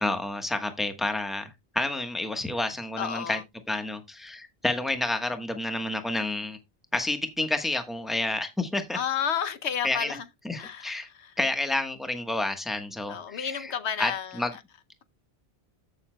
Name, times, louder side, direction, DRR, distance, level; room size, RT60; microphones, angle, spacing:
voice 1, 0.0-3.4 3.7-6.6 6.9-9.0 9.8-10.2 10.4-11.1 11.4-13.7 14.0-14.5, left 2 dB, ahead, 1.1 m, -29 dB
voice 2, 3.0-3.4 8.9-10.2 10.6-11.3 13.1-14.4, left 8 dB, 75° left, 1.0 m, -31 dB
14.0 x 6.6 x 2.2 m
omnidirectional pair, 1.1 m